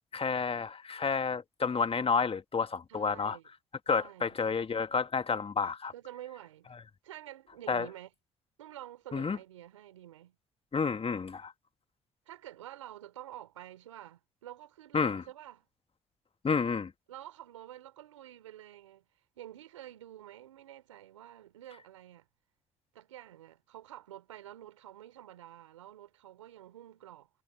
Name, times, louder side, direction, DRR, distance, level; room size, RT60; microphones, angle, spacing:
voice 1, 0.1-3.4 3.9-5.9 7.7-7.9 9.1-9.4 10.7-11.5 14.9-15.2 16.4-16.9, left 5 dB, 40° left, 1.9 m, -30 dB
voice 2, 2.9-3.5 3.9-4.4 5.9-6.7 7.0-8.1 8.6-10.3 12.3-15.7 17.1-19.0 19.4-22.3 22.9-27.3, right 13 dB, 90° right, 3.1 m, -49 dB
hypercardioid pair, 45°, 16 cm